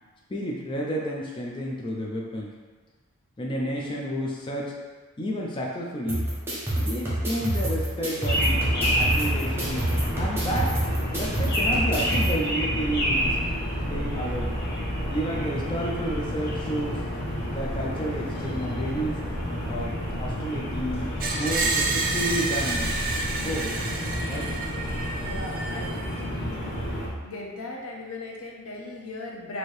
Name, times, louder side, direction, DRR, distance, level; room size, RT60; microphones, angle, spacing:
voice 1, 0.3-2.5 3.4-4.7 5.2-6.3 6.7-9.9 10.1-10.7 11.1-13.4 13.9-14.6 15.1-17.0 17.5-19.2 19.7-22.9 23.4-23.8 24.3-24.5, equal, 25° left, -3 dB, 0.4 m, -31 dB
sound 1, 6.1-12.3, right 1 dB, 10° right, 0.8 m, -28 dB
sound 2, 8.2-27.1, equal, 45° left, 1.1 m, -29 dB
Screech, 21.2-26.2, right 3 dB, 40° right, 0.5 m, -29 dB
voice 2, 25.2-26.9 27.2-29.6, left 2 dB, 80° left, -1 dB, 0.7 m, -38 dB
4.3 x 2.8 x 3.2 m, 1.4 s
head